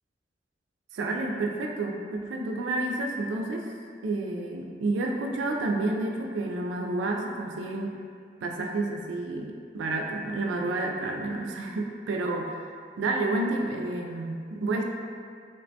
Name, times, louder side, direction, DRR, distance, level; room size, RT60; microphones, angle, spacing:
voice 1, 0.9-3.7 4.0-7.9 8.4-12.7 13.0-14.8, right 2 dB, 90° right, 1 dB, 0.3 m, -30 dB
3.0 x 2.1 x 2.6 m, 2.1 s
head